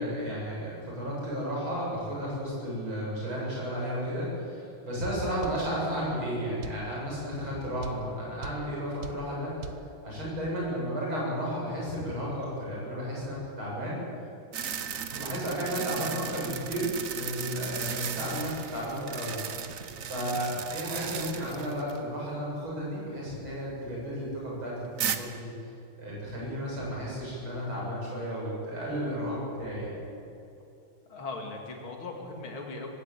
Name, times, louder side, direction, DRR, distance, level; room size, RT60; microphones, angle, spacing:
voice 1, 0.0-9.6 10.0-14.1 15.1-19.4 20.0-25.5 26.0-30.0, equal, 85° right, -5 dB, 8.3 m, -33 dB
sound 1, 5.4-5.6 6.6-6.8 7.8-8.0 8.4-8.6 9.0-9.2 9.6-9.8, right 6 dB, 65° right, 1.6 m, -39 dB
sound 2, 14.5-22.0 22.3-22.4 25.0-25.2, right 8 dB, 50° right, 1.2 m, -36 dB
voice 2, 31.1-32.9, left 3 dB, 80° left, 2 dB, 3.3 m, -39 dB
19.0 x 17.0 x 8.6 m, 2.7 s
omnidirectional pair, 2.2 m